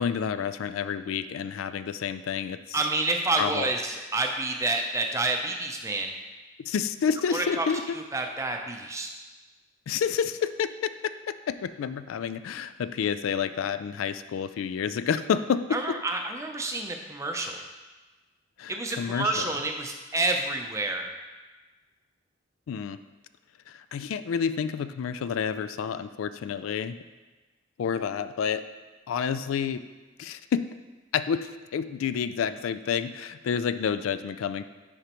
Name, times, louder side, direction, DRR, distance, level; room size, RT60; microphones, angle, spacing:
voice 1, 0.0-2.8 3.4-3.7 6.7-8.0 9.9-16.0 18.6-19.5 22.7-23.0 23.7-27.0 27.8-28.6 29.1-29.8 30.2-30.6 31.1-34.6, left 7 dB, 85° left, 13 dB, 0.3 m, -29 dB
voice 2, 2.7-6.1 7.3-7.7 7.9-9.1 15.7-17.6 18.7-21.1, right 2 dB, 15° right, 3 dB, 0.5 m, -29 dB
9.8 x 5.0 x 3.0 m, 1.2 s
head